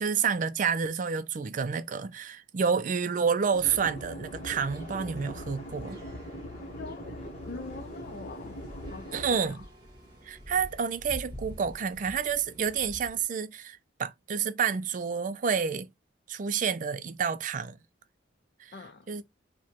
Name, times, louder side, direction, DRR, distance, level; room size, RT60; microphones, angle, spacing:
voice 1, 0.0-6.0 9.1-9.6 10.2-15.9 16.3-17.8 18.6-18.7 19.1-19.2, right 6 dB, 45° right, 0.4 m, -29 dB
sound 1, 3.5-9.3, equal, 35° left, 0.9 m, -41 dB
sound 2, 4.3-13.2, equal, 20° right, 1.4 m, -48 dB
voice 2, 6.7-9.7 18.7-19.1, left 3 dB, 55° left, 0.4 m, -44 dB
4.7 x 2.2 x 2.9 m
head